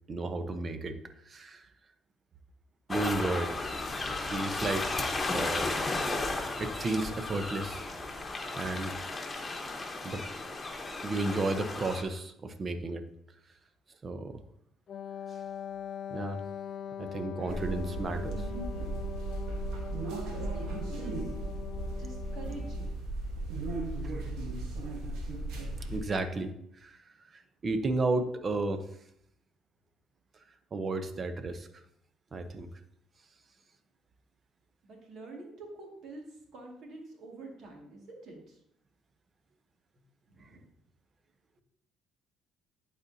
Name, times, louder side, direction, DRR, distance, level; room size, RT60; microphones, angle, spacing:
voice 1, 0.1-1.0 1.2-1.6 2.9-3.5 4.2-5.0 5.3-5.7 6.6-7.8 8.5-9.2 10.0-10.2 11.0-13.0 14.0-14.4 16.1-16.4 17.0-18.5 24.0-24.3 25.9-27.0 27.3-28.9 30.7-31.7 32.3-32.7, right 2 dB, 40° right, 9 dB, 0.8 m, -33 dB
sound 1, 2.9-12.0, left 2 dB, 25° left, 1.2 m, -34 dB
Wind instrument woodwind instrument, 14.9-23.0, left 8 dB, 55° left, 0.3 m, -42 dB
sound 2, 17.5-26.0, right 2 dB, 80° right, 1.2 m, -36 dB
voice 2, 20.3-21.4 22.0-23.0 34.8-38.6 40.3-40.6, right 2 dB, 65° right, 0 dB, 2.1 m, -47 dB
11.0 x 4.3 x 2.8 m, 0.74 s
supercardioid pair, 70°, 0 cm